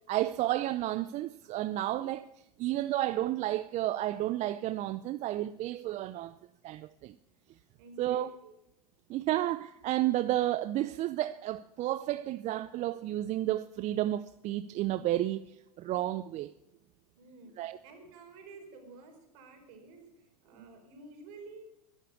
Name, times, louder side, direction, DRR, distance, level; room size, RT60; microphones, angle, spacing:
voice 1, 0.1-2.3 2.6-6.3 6.6-7.1 8.0-8.3 9.1-15.4 15.8-16.5 17.6-17.8, right 14 dB, 35° right, 0.6 m, -31 dB
voice 2, 7.8-8.6 17.2-21.6, right 3 dB, 60° right, 4.7 m, -51 dB
12.5 x 12.0 x 8.2 m
hypercardioid pair, 100°, 20 cm